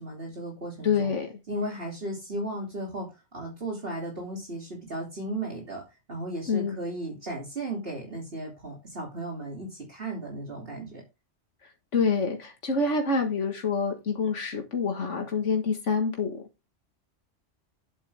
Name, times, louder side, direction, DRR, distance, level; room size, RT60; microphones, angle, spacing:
voice 1, 0.0-1.2 1.5-11.0, right 1 dB, 55° right, 3.1 m, -35 dB
voice 2, 0.8-1.3 6.5-6.8 11.9-16.4, left 4 dB, 80° left, 2.0 m, -26 dB
10.0 x 8.2 x 3.5 m
omnidirectional pair, 1.2 m